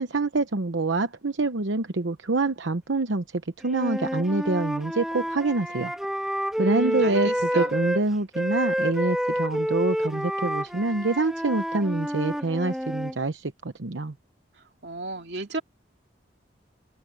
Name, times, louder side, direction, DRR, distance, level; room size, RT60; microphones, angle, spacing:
voice 1, 0.0-3.2 3.6-5.9 6.6-14.1, right 3 dB, 85° right, 0.9 m, -26 dB
Wind instrument woodwind instrument, 3.6-8.0 8.3-13.2, equal, 5° right, 2.3 m, -29 dB
voice 2, 6.6-7.8 14.8-15.6, right 2 dB, 65° right, 3.0 m, -34 dB
head